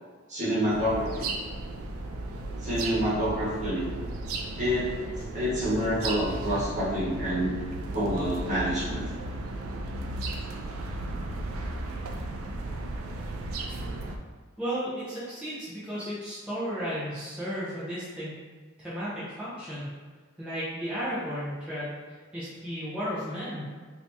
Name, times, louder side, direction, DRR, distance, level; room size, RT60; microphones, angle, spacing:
voice 1, 0.3-1.3 2.6-3.9 4.6-4.9 5.3-7.6 7.9-9.1, equal, 35° right, -9 dB, 1.3 m, -27 dB
sound 1, 0.7-14.2, right 2 dB, 85° right, 0.4 m, -35 dB
voice 2, 14.6-18.4 18.8-19.9 20.4-23.6, equal, 5° right, -12 dB, 0.7 m, -34 dB
2.8 x 2.8 x 3.4 m, 1.5 s
head